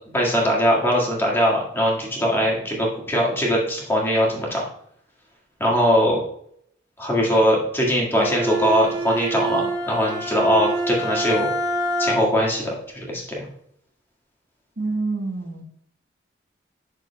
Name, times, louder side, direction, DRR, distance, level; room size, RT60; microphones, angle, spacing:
voice 1, 0.1-4.6 5.6-6.2 7.0-11.5 12.0-12.7 13.1-13.4, equal, 10° left, -4 dB, 1.8 m, -21 dB
Bowed string instrument, 8.1-12.5, right 2 dB, 25° right, 0.9 m, -26 dB
voice 2, 14.8-15.6, right 3 dB, 70° right, 1 dB, 1.4 m, -27 dB
9.1 x 6.5 x 2.3 m, 0.69 s
head